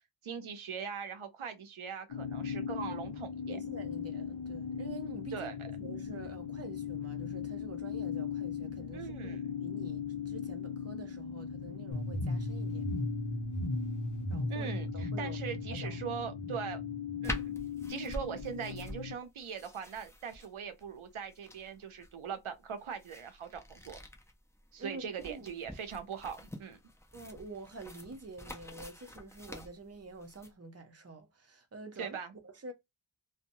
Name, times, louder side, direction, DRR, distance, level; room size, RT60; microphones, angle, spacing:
voice 1, 0.2-3.6 5.3-5.7 8.9-9.5 14.5-16.8 17.2-17.5 17.9-24.0 24.7-26.8 32.0-32.3, right 7 dB, 85° right, 0.7 m, -41 dB
sound 1, 2.1-19.2, left 8 dB, 80° left, 0.6 m, -39 dB
voice 2, 3.5-12.9 14.3-16.0 24.8-25.5 27.1-32.2 32.4-32.7, right 3 dB, 30° right, 0.7 m, -47 dB
sound 2, 11.9-17.9, equal, 40° left, 0.8 m, -37 dB
sound 3, 17.2-30.5, left 1 dB, 5° left, 0.5 m, -46 dB
2.8 x 2.1 x 2.6 m
wide cardioid pair, 50°, 48 cm